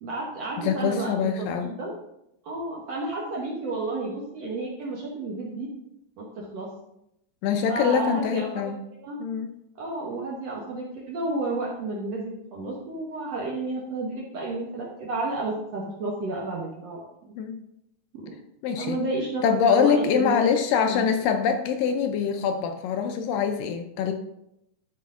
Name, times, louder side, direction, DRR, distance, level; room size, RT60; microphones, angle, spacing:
voice 1, 0.0-1.9 2.4-5.7 6.2-6.7 7.7-8.7 9.0-9.2 9.8-17.1 18.1-18.3 18.8-20.3 20.8-21.1, right 2 dB, 60° right, -3 dB, 1.8 m, -31 dB
voice 2, 0.6-1.7 7.4-8.8 9.2-9.5 17.4-17.6 18.6-19.0 19.4-24.1, left 6 dB, 80° left, 6 dB, 2.2 m, -24 dB
11.5 x 5.0 x 3.7 m, 0.81 s
omnidirectional pair, 4.2 m